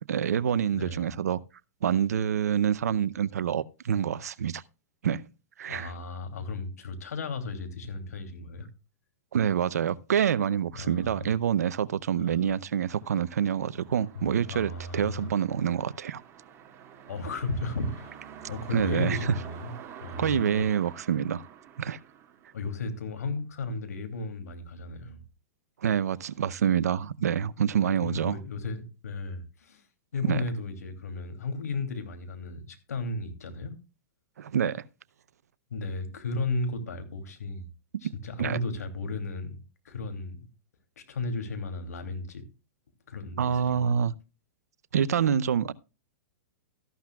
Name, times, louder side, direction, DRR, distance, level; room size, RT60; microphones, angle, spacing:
voice 1, 0.1-1.4 1.8-4.6 5.0-5.3 5.6-5.9 9.3-16.2 18.7-19.2 20.2-21.4 21.8-22.0 25.8-28.4 30.2-30.4 34.4-34.8 38.4-38.6 43.4-44.1 44.9-45.7, right 8 dB, 80° right, 0.6 m, -27 dB
voice 2, 0.7-1.1 5.7-8.7 10.7-11.3 12.2-12.6 14.1-15.3 17.1-18.2 18.5-19.7 20.0-20.6 22.5-25.2 27.8-29.8 30.1-33.7 35.7-37.7 38.0-40.5 41.0-42.4 43.1-43.8, left 3 dB, 80° left, 2.8 m, -34 dB
sound 1, 12.8-23.1, right 9 dB, 30° right, 2.2 m, -48 dB
14.0 x 11.5 x 2.3 m
hypercardioid pair, 115°, 9 cm